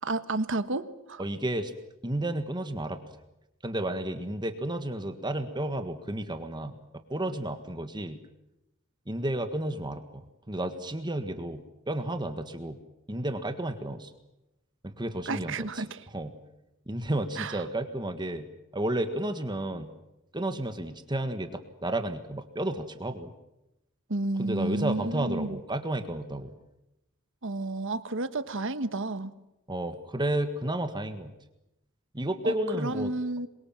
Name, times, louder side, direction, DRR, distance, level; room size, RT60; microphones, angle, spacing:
voice 1, 0.0-1.2 15.3-16.0 17.4-17.6 24.1-25.6 27.4-29.3 32.4-33.5, right 2 dB, 60° right, 11 dB, 1.4 m, -31 dB
voice 2, 1.2-1.7 2.0-3.0 3.6-8.2 9.1-12.8 13.1-14.1 14.8-15.9 16.1-16.3 16.9-18.5 18.7-19.9 20.3-23.3 24.4-26.5 29.7-31.3 32.1-33.1, right 1 dB, 20° right, 8 dB, 1.6 m, -32 dB
27.0 x 23.0 x 7.5 m, 0.91 s
head